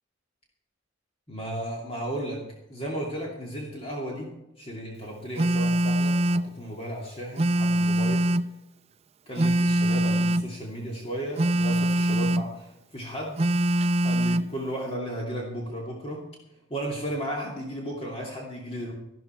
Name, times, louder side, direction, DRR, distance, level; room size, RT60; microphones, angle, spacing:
voice 1, 1.3-2.4 2.7-4.3 4.6-8.3 9.3-13.4 14.0-16.2 16.7-18.9, right 1 dB, 30° left, -2 dB, 2.6 m, -34 dB
Telephone, 5.4-6.5 7.4-8.5 9.4-10.5 11.4-12.5 13.4-14.5, right 1 dB, 30° right, 0.4 m, -23 dB
14.0 x 12.5 x 4.5 m, 0.88 s
head